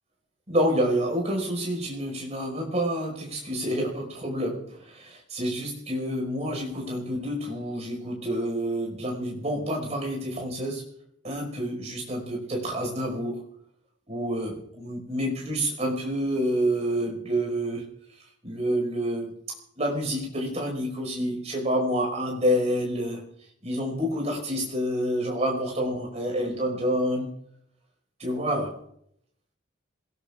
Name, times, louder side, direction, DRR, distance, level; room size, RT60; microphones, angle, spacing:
voice 1, 0.5-10.9 11.2-13.4 14.1-17.8 18.4-19.3 19.8-23.2 23.6-27.3 28.2-28.8, equal, 35° right, 0 dB, 5.4 m, -28 dB
26.5 x 18.5 x 2.5 m, 0.71 s
head